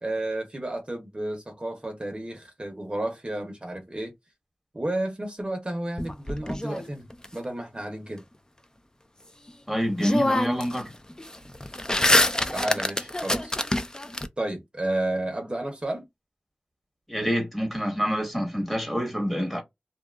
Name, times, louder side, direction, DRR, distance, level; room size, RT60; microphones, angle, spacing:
voice 1, 0.0-4.1 4.7-8.2 12.5-13.5 14.4-16.1, right 1 dB, 35° right, 0.7 m, -32 dB
sound 1, 6.0-7.3 9.5-9.6 10.0-10.8 11.1-14.3, left 1 dB, 20° left, 0.4 m, -25 dB
voice 2, 9.7-10.9 17.1-19.6, equal, 5° left, 1.2 m, -27 dB
2.7 x 2.3 x 2.2 m
wide cardioid pair, 45°, 3 cm